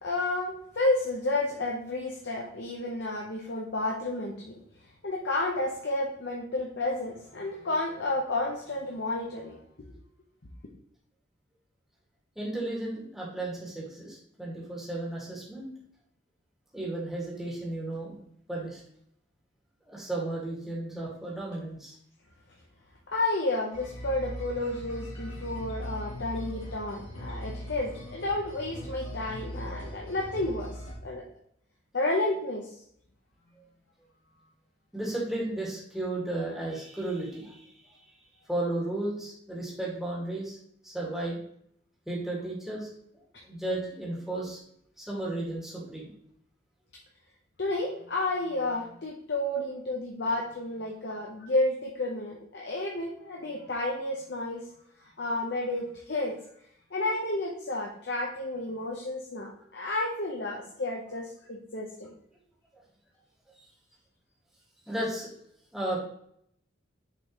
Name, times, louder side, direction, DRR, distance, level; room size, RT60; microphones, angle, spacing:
voice 1, 0.0-4.5 5.0-9.6 23.1-30.7 31.0-31.2 31.9-32.7 47.6-54.6 55.2-56.3 56.9-62.1, left 2 dB, 60° left, -1 dB, 1.0 m, -31 dB
voice 2, 12.4-15.7 16.7-18.2 18.5-18.8 19.9-21.9 34.9-38.0 38.5-40.6 40.8-41.4 42.1-42.9 43.4-44.6 45.0-46.1 64.9-65.3 65.7-66.0, right 1 dB, ahead, -5 dB, 2.0 m, -34 dB
sound 1, 23.7-30.9, equal, 80° left, 2.6 m, -40 dB
7.0 x 5.2 x 3.1 m, 0.69 s
head